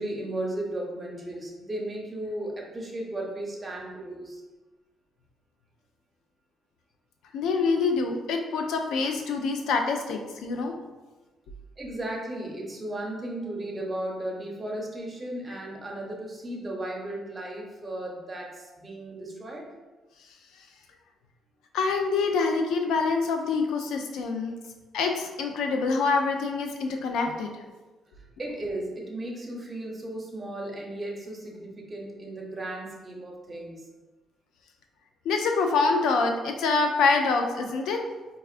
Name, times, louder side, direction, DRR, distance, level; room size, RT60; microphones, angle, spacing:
voice 1, 0.0-4.4 11.8-19.7 28.2-33.9, right 1 dB, 25° right, -1 dB, 0.8 m, -35 dB
voice 2, 7.3-10.7 21.7-24.5 24.9-27.5 35.2-38.0, left 4 dB, 85° left, 4 dB, 0.4 m, -25 dB
4.2 x 2.4 x 2.4 m, 1.2 s
cardioid pair, 90°, 0 cm